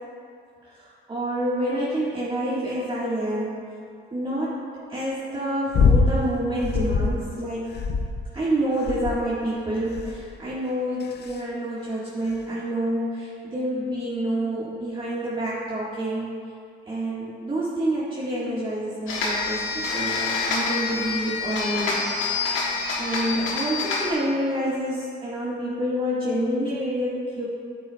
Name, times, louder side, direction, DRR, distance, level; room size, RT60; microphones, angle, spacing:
voice 1, 1.1-3.5 4.1-4.6 4.9-7.7 8.3-16.3 16.9-21.9 22.4-22.7 23.0-27.5, right 1 dB, 25° right, -8 dB, 1.5 m, -27 dB
sound 1, 5.7-6.2 6.6-7.2 7.7-8.4 8.9-9.3 10.0-10.3 11.0-11.4 12.3-12.4, left 4 dB, 55° left, 0.6 m, -22 dB
sound 2, 19.1-24.1, left 4 dB, 90° left, 1.2 m, -27 dB
8.5 x 8.3 x 2.2 m, 2.3 s
cardioid pair, 90°, 20 cm